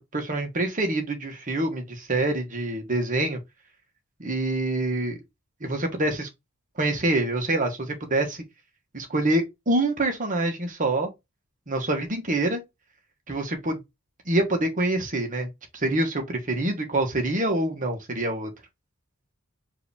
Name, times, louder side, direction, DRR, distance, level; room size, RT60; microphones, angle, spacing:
voice 1, 0.1-3.4 4.2-5.2 5.6-6.3 6.8-8.4 8.9-11.1 11.7-12.6 13.3-13.8 14.3-18.5, right 2 dB, 40° right, 1.2 m, -26 dB
4.8 x 2.8 x 3.5 m
head